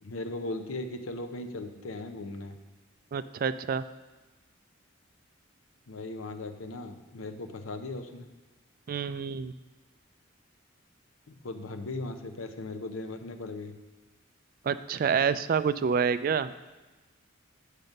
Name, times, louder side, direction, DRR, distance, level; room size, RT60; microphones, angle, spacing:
voice 1, 0.0-2.6 5.9-8.3 11.3-13.8, left 2 dB, 90° left, 8 dB, 0.7 m, -38 dB
voice 2, 3.1-3.8 8.9-9.5 14.6-16.5, right 6 dB, 45° right, 14 dB, 0.3 m, -27 dB
7.5 x 6.6 x 5.3 m, 1.2 s
head